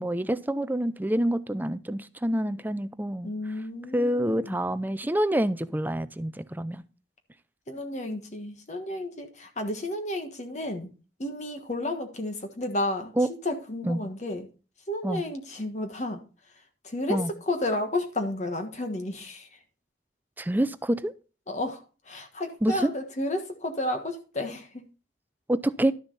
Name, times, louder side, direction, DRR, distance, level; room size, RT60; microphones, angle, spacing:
voice 1, 0.0-3.3 3.9-6.8 13.2-13.3 13.8-14.0 15.0-15.2 17.1-17.3 20.4-21.1 22.6-22.9 25.5-25.9, right 1 dB, 10° right, 0.5 m, -27 dB
voice 2, 3.2-4.6 7.7-10.9 11.2-13.1 13.4-14.5 14.9-16.2 16.8-19.6 21.5-24.8, left 1 dB, 40° left, 1.4 m, -32 dB
12.0 x 7.0 x 4.0 m
head